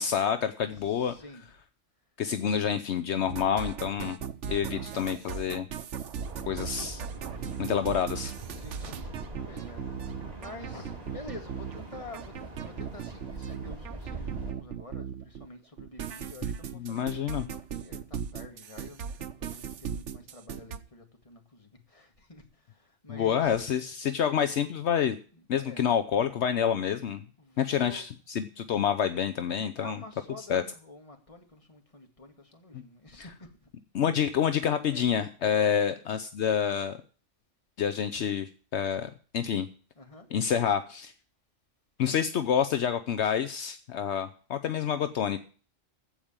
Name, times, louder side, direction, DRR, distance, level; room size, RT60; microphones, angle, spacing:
voice 1, 0.0-1.1 2.2-4.2 4.5-5.7 6.5-7.0 7.6-8.3 16.7-17.4 23.1-25.2 25.5-27.2 27.6-30.0 30.5-30.6 32.7-32.8 33.2-33.3 33.9-37.0 37.8-39.7 40.3-41.1 42.0-45.4, left 8 dB, 70° left, 1.0 m, -28 dB
voice 2, 0.7-1.6 4.6-5.2 6.5-6.8 8.4-9.1 9.4-23.6 25.3-25.9 27.4-28.1 29.8-33.7 34.9-35.1 35.5-35.8 40.0-40.3, left 2 dB, 30° left, 2.0 m, -48 dB
sound 1, 3.3-15.5 15.8-20.8, right 7 dB, 80° right, 1.2 m, -37 dB
sound 2, 6.1-14.5, right 2 dB, 35° right, 2.8 m, -43 dB
14.5 x 5.0 x 8.7 m
omnidirectional pair, 1.2 m